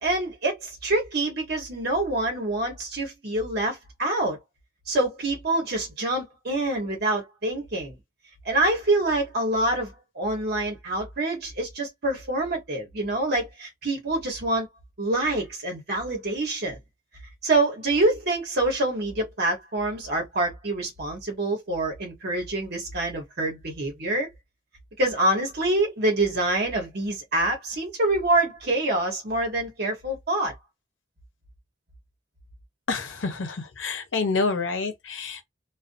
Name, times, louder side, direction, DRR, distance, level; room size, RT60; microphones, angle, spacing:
voice 1, 0.0-4.4 4.9-8.0 8.4-14.7 15.0-16.8 17.4-24.3 25.0-30.5, right 2 dB, 55° right, 1.0 m, -26 dB
voice 2, 32.9-35.4, left 4 dB, 80° left, 0.8 m, -28 dB
2.5 x 2.4 x 2.6 m
head